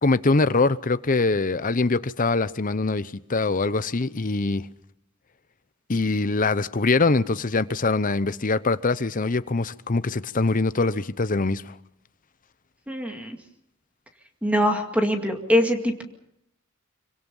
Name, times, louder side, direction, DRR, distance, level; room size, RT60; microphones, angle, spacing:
voice 1, 0.0-4.6 5.9-11.7, left 3 dB, 40° left, 0.8 m, -23 dB
voice 2, 12.9-13.4 14.4-16.0, equal, 5° right, 2.2 m, -23 dB
26.0 x 25.0 x 5.5 m
head